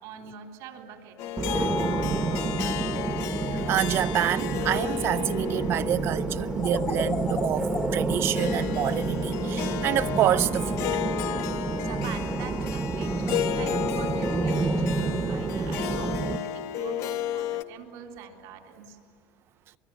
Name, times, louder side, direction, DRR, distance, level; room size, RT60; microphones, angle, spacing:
voice 1, 0.0-2.6 11.8-19.0, right 6 dB, 75° right, 3.7 m, -43 dB
Harp, 1.2-17.6, left 12 dB, 55° left, 0.8 m, -33 dB
sound 1, 1.4-16.4, right 4 dB, 15° right, 0.9 m, -29 dB
voice 2, 3.7-10.9, right 11 dB, 40° right, 0.6 m, -27 dB
sound 2, 6.6-9.8, left 4 dB, 20° left, 0.9 m, -34 dB
24.5 x 23.0 x 9.2 m
cardioid pair, 160°, 6 cm